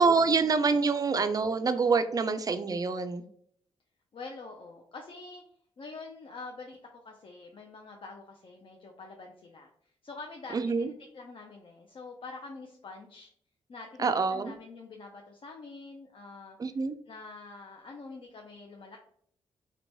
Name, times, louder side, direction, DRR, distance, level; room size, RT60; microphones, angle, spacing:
voice 1, 0.0-3.2 10.5-10.9 14.0-14.5 16.6-17.0, right 4 dB, 30° right, 10 dB, 0.4 m, -26 dB
voice 2, 4.1-5.4 5.8-13.3 13.7-16.6 17.1-19.0, left 3 dB, 45° left, 1 dB, 0.5 m, -46 dB
3.0 x 2.2 x 2.6 m, 0.64 s
supercardioid pair, 45°, 12 cm